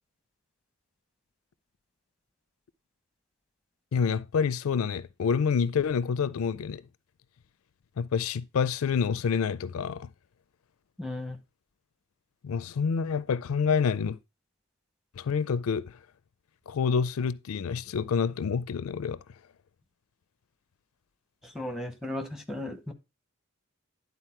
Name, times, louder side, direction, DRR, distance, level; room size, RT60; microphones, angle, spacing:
voice 1, 3.9-6.8 8.0-10.1 12.4-14.2 15.2-16.0 16.7-19.2, left 6 dB, 75° left, 0.4 m, -27 dB
voice 2, 11.0-11.4 21.5-22.9, left 1 dB, ahead, 0.9 m, -35 dB
10.5 x 4.1 x 4.4 m
head